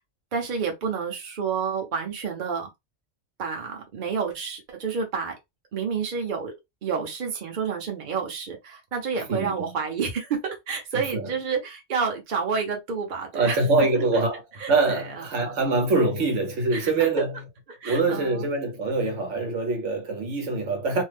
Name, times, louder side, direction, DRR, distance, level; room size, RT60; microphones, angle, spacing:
voice 1, 0.3-2.7 3.4-5.4 5.7-6.5 6.8-13.9 14.6-15.8 16.7-17.1 17.7-18.4, right 5 dB, 45° right, 0.9 m, -29 dB
voice 2, 9.3-9.8 11.1-11.3 13.3-14.4 14.7-17.4 17.8-21.0, right 3 dB, 75° right, 1.2 m, -24 dB
2.7 x 2.1 x 3.3 m
omnidirectional pair, 1.2 m